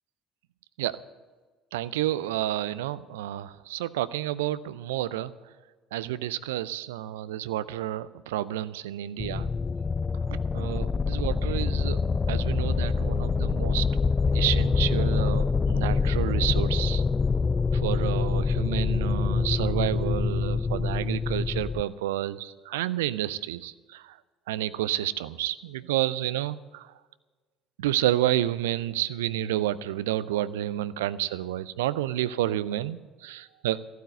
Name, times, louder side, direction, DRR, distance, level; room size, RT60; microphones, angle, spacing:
voice 1, 1.7-5.3 5.9-9.5 10.3-12.0 12.3-13.9 14.3-17.0 17.7-24.2 24.5-26.9 27.8-33.8, right 13 dB, 75° right, 17 dB, 0.4 m, -30 dB
sound 1, 9.2-21.8, left 4 dB, 30° left, 0.3 m, -25 dB
15.0 x 9.3 x 8.0 m, 1.4 s
figure-of-eight pair, 55°, 0 cm